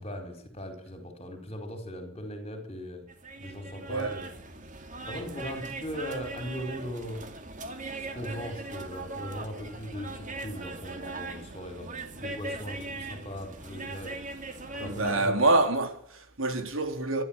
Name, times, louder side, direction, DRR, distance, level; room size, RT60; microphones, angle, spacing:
voice 1, 0.0-3.1 3.4-4.3 5.1-7.2 8.0-14.2 14.8-15.4, equal, 30° left, 4.6 m, -39 dB
sound 1, 3.1-15.1, right 3 dB, 40° right, 2.4 m, -40 dB
voice 2, 3.9-4.2 14.7-17.2, right 2 dB, 80° right, 3.8 m, -26 dB
26.5 x 12.0 x 8.9 m
head